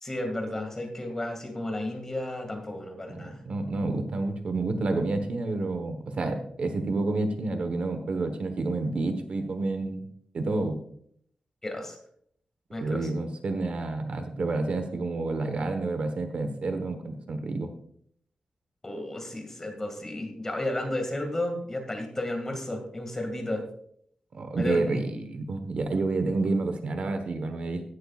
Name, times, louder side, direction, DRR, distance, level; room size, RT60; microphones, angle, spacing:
voice 1, 0.0-3.4 11.6-12.0 12.7-13.1 18.8-23.6 24.6-24.8, left 1 dB, 20° left, 4 dB, 2.1 m, -33 dB
voice 2, 3.1-10.0 10.3-10.8 12.8-17.7 24.3-27.8, right 3 dB, 55° right, 7 dB, 1.1 m, -29 dB
15.5 x 11.0 x 2.4 m, 0.66 s
wide cardioid pair, 170°, 2 cm